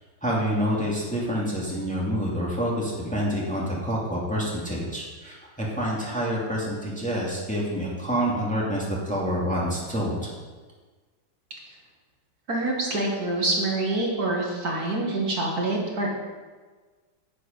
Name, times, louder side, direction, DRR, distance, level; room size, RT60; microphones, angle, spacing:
voice 1, 0.2-10.3, equal, 5° left, -5 dB, 2.2 m, -27 dB
voice 2, 12.5-16.1, right 2 dB, 55° right, -2 dB, 2.2 m, -26 dB
10.0 x 8.6 x 5.3 m, 1.4 s
omnidirectional pair, 1.9 m